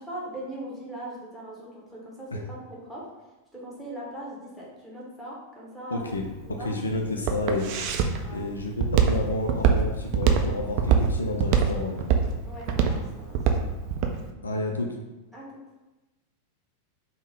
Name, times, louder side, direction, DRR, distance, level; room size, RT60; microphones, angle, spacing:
voice 1, 0.0-3.1 3.5-6.1 6.5-6.7 7.0-7.1 8.2-8.5 12.4-13.4 15.3-15.6, right 1 dB, 5° left, -7 dB, 1.1 m, -40 dB
voice 2, 5.9-7.8 8.3-12.0 14.4-15.0, left 2 dB, 75° left, 2 dB, 0.3 m, -30 dB
Walk footsteps, 6.0-14.2, right 7 dB, 45° right, 0.3 m, -23 dB
3.5 x 2.1 x 3.4 m, 1.1 s
figure-of-eight pair, 90°, 0 cm